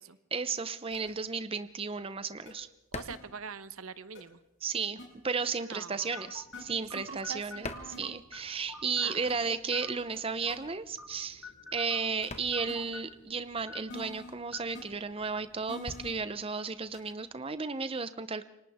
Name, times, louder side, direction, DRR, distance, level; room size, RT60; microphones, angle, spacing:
voice 1, 0.3-2.7 4.6-7.7 8.0-18.5, right 5 dB, 25° right, 12 dB, 0.7 m, -34 dB
sound 1, 0.9-1.1 2.5-2.6 3.1-3.2 4.1-4.2 5.0-5.1 6.5-6.6 7.9-8.0 9.3-9.4 10.1-10.2 10.5-10.6 12.2-12.3 12.7-12.8 13.9-14.3 14.7-14.8 15.7-16.1 16.9-17.1, left 1 dB, 60° left, 6.8 m, -45 dB
sound 2, 2.9-4.4 4.7-8.8 9.1-17.9, left 2 dB, 30° left, 1.4 m, -48 dB
voice 2, 2.9-4.4 5.6-6.3 6.8-8.2 8.9-9.3, right 5 dB, 85° right, 13 dB, 1.0 m, -44 dB
sound 3, 6.1-15.6, left 3 dB, 85° left, 2.1 m, -49 dB
28.5 x 25.0 x 3.6 m, 0.88 s
head